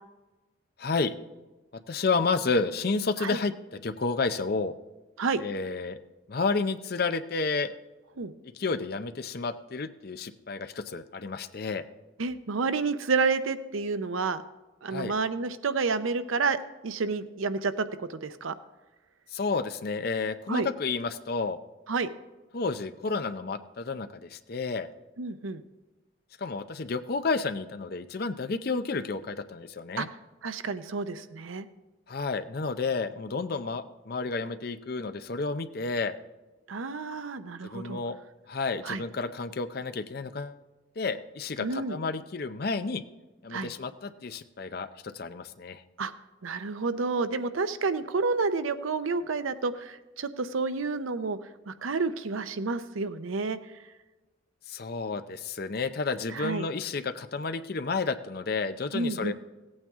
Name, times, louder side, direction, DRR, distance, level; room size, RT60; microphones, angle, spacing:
voice 1, 0.8-1.1 1.9-4.7 5.4-6.0 6.3-7.7 8.5-11.8 14.9-15.1 19.3-21.6 22.5-24.9 26.4-30.1 32.1-36.2 37.6-38.2 38.5-40.6 41.0-43.0 43.4-45.8 54.7-59.3, left 4 dB, 50° left, 11 dB, 0.5 m, -31 dB
voice 2, 12.2-14.4 14.8-17.8 18.1-18.5 20.5-20.7 21.9-22.1 25.2-25.6 30.0-30.1 30.4-31.7 36.7-38.0 38.8-39.0 41.6-42.0 43.5-43.7 46.0-46.1 46.4-51.4 51.7-53.6 56.3-56.6 58.9-59.3, right 4 dB, 90° right, 12 dB, 0.6 m, -29 dB
16.0 x 8.7 x 3.6 m, 1.2 s
head